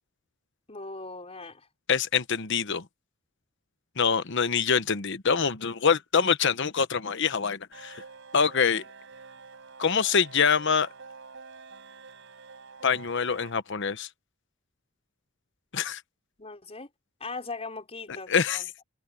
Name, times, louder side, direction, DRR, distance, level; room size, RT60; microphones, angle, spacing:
voice 1, 0.7-1.7 16.4-16.9 17.2-18.8, left 3 dB, 30° left, 5.2 m, -39 dB
voice 2, 1.9-2.8 4.0-8.0 8.3-8.8 9.8-10.9 12.8-14.1 15.7-16.0 18.3-18.6, left 6 dB, 60° left, 1.0 m, -25 dB
sound 1, 7.7-13.5, right 4 dB, 65° right, 7.1 m, -48 dB
head